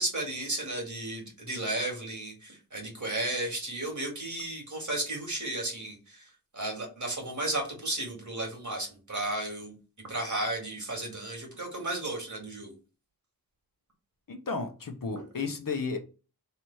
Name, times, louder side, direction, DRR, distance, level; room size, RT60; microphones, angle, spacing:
voice 1, 0.0-9.7 10.1-12.8 15.2-15.3, right 2 dB, 50° right, 1.9 m, -34 dB
voice 2, 14.3-16.0, left 4 dB, 60° left, 0.8 m, -33 dB
3.3 x 3.0 x 4.5 m
wide cardioid pair, 75°, 38 cm